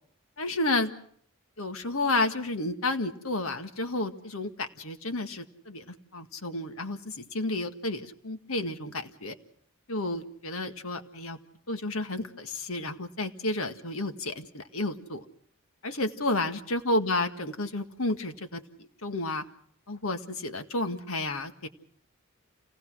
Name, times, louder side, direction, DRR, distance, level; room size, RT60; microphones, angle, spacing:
voice 1, 0.4-0.9 1.6-9.4 9.9-11.4 11.7-15.3 15.8-19.4 19.9-21.7, left 2 dB, 70° left, 9 dB, 1.9 m, -31 dB
29.0 x 18.5 x 6.3 m, 0.62 s
head